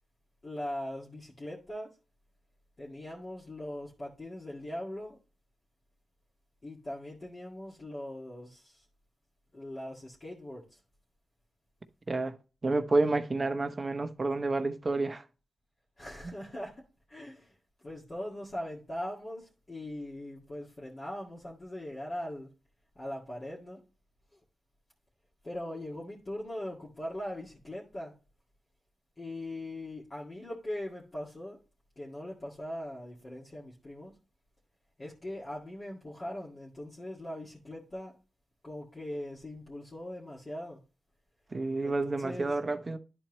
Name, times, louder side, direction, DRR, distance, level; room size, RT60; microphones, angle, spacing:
voice 1, 0.4-1.9 2.8-5.2 6.6-8.9 9.5-10.8 16.0-16.8 17.1-22.5 23.0-23.8 24.3-24.4 25.4-28.1 29.2-31.6 32.0-34.1 35.0-38.1 38.6-40.8 41.8-42.6, left 1 dB, 40° left, 1.9 m, -40 dB
voice 2, 12.6-15.2 41.5-43.0, right 2 dB, 40° right, 0.8 m, -29 dB
10.5 x 4.4 x 3.0 m
supercardioid pair, 45°, 0 cm